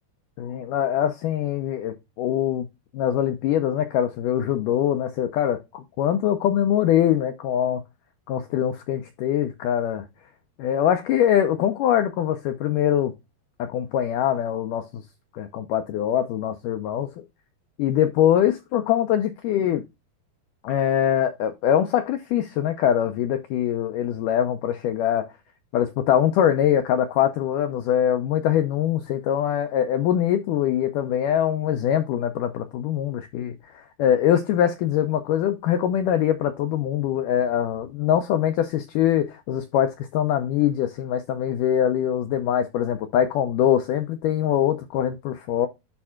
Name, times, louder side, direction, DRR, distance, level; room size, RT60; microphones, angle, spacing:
voice 1, 0.4-2.7 2.9-7.8 8.3-10.1 10.6-13.1 13.6-15.0 15.3-17.1 17.8-19.8 20.6-25.3 25.7-45.7, left 10 dB, 90° left, 1.8 m, -23 dB
11.5 x 4.3 x 2.4 m
omnidirectional pair, 4.5 m